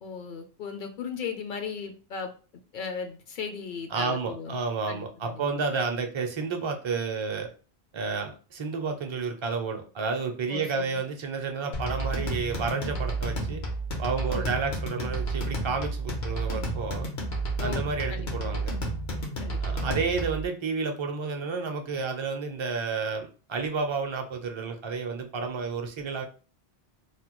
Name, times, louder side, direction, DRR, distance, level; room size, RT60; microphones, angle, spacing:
voice 1, 0.0-2.3 2.7-4.6 4.9-5.6 10.5-11.0 14.3-14.5 17.6-17.8 18.1-18.6 19.4-20.0, left 5 dB, 60° left, 5 dB, 0.6 m, -37 dB
voice 2, 3.9-7.5 7.9-13.6 14.0-17.1 17.6-18.7 19.6-26.2, right 4 dB, 40° right, 4 dB, 0.4 m, -31 dB
sound 1, 11.7-20.5, right 2 dB, 85° left, 1.2 m, -31 dB
3.3 x 2.2 x 2.9 m, 0.36 s
omnidirectional pair, 1.1 m